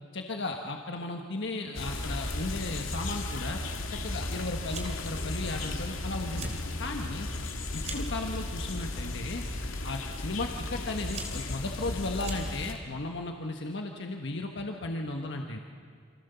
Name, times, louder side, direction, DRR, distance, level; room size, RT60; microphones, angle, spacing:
voice 1, 0.1-3.6 3.9-7.3 7.7-9.4 9.8-15.6, left 2 dB, 60° left, 3 dB, 1.4 m, -35 dB
sound 1, 1.7-12.7, left 2 dB, 90° left, 2.2 m, -35 dB
Fire, 4.7-5.2 5.5-6.0 6.2-6.6 7.0-8.2 9.0-9.3 10.2-10.3 10.8-12.8, right 5 dB, 35° right, 3.4 m, -43 dB
29.0 x 25.5 x 7.0 m, 2.2 s
head